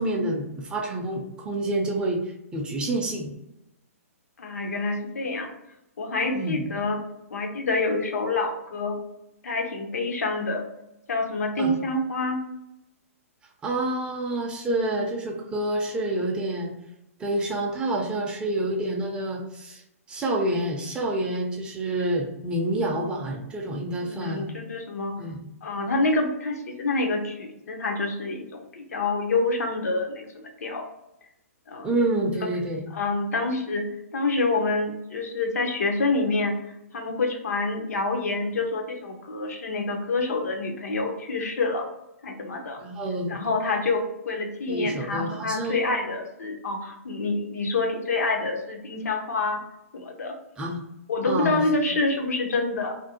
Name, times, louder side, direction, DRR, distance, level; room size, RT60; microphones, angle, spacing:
voice 1, 0.0-2.2 2.5-3.3 6.3-6.7 11.6-11.8 13.6-16.7 17.2-19.8 20.1-24.5 25.2-25.5 31.8-32.8 42.8-43.5 44.7-45.8 50.6-50.8 51.3-51.6 51.9-52.0, right 1 dB, 10° right, 0 dB, 0.4 m, -28 dB
voice 2, 4.4-5.5 6.0-7.0 7.3-9.0 9.4-10.6 11.1-12.4 24.0-25.2 25.6-30.8 31.7-31.9 32.9-33.9 34.1-36.6 36.9-41.9 42.2-42.8 43.3-49.6 49.9-50.3 51.1-52.9, left 3 dB, 80° left, 3 dB, 0.6 m, -27 dB
2.5 x 2.0 x 2.7 m, 0.87 s
hypercardioid pair, 140°, 8 cm